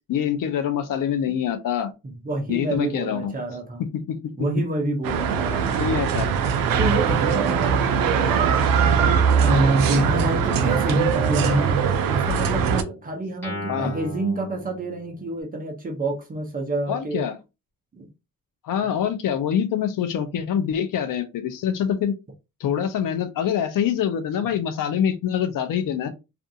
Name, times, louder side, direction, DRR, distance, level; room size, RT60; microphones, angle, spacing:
voice 1, 0.1-1.9 2.5-3.3 3.8-4.3 5.8-6.3 13.7-13.9 16.9-17.4 18.6-22.1 22.6-26.1, left 9 dB, 70° left, 0.5 m, -25 dB
voice 2, 2.0-3.8 4.4-5.8 6.8-8.5 9.0-11.8 12.1-17.2 18.0-18.1, right 2 dB, 25° right, 0.6 m, -27 dB
sound 1, 5.0-12.8, right 7 dB, 75° right, 0.5 m, -21 dB
Guitar, 9.4-10.9 11.4-15.3, left 1 dB, 5° left, 1.2 m, -37 dB
2.5 x 2.3 x 2.6 m
wide cardioid pair, 170°, 34 cm